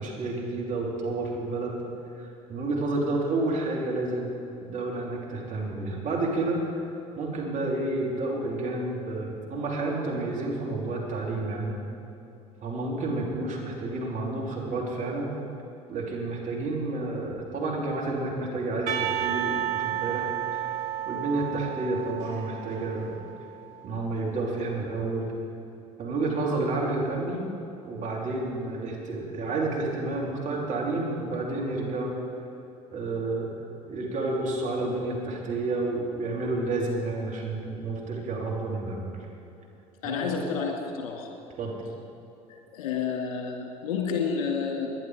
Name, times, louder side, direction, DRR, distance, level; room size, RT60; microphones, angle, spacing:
voice 1, 0.0-1.8 2.2-4.3 4.6-6.6 7.2-11.8 12.6-15.3 15.9-20.2 20.5-20.7 21.1-23.2 23.8-25.3 26.0-27.4 27.8-32.2 32.9-33.5 33.9-39.1 40.0-40.2 41.6-41.7, right 2 dB, 45° right, -2 dB, 3.5 m, -30 dB
Percussion / Church bell, 18.9-23.9, right 11 dB, 60° right, 1.7 m, -32 dB
voice 2, 40.0-41.3 42.5-44.9, left 6 dB, 70° left, 1 dB, 2.2 m, -30 dB
19.0 x 11.0 x 5.0 m, 2.9 s
hypercardioid pair, 65°, 18 cm